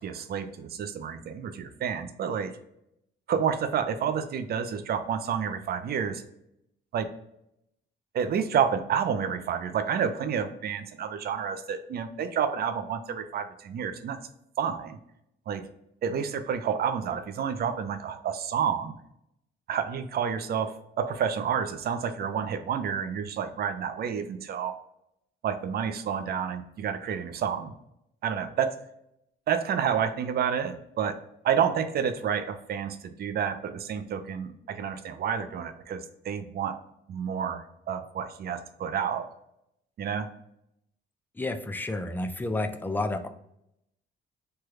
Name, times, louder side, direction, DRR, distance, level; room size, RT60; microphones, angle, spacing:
voice 1, 0.0-2.5 3.3-6.2 6.9-7.1 8.1-14.2 14.6-15.0 15.5-15.7 16.0-18.9 19.7-24.7 25.4-27.7 28.2-28.8 29.5-31.2 31.4-36.8 37.1-39.3 40.0-40.3, right 7 dB, 50° right, 9 dB, 0.5 m, -29 dB
voice 2, 41.3-43.3, left 2 dB, 10° left, 7 dB, 0.4 m, -30 dB
3.2 x 2.3 x 3.1 m, 0.77 s
cardioid pair, 90°, 20 cm